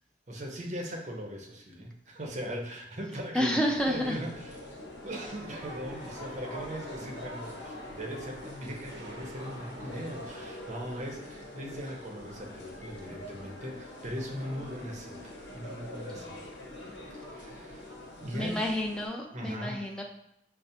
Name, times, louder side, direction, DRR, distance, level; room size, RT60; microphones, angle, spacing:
voice 1, 0.3-4.8 5.0-16.4 17.1-17.9 18.2-18.7 19.3-19.8, equal, 40° right, 0 dB, 0.6 m, -39 dB
voice 2, 3.3-4.2 18.3-20.0, equal, 5° left, 0 dB, 0.4 m, -29 dB
sound 1, 3.6-19.1, left 1 dB, 80° left, 0.9 m, -44 dB
sound 2, 5.3-10.5, right 1 dB, 80° right, 0.6 m, -48 dB
5.4 x 2.0 x 2.7 m, 0.77 s
head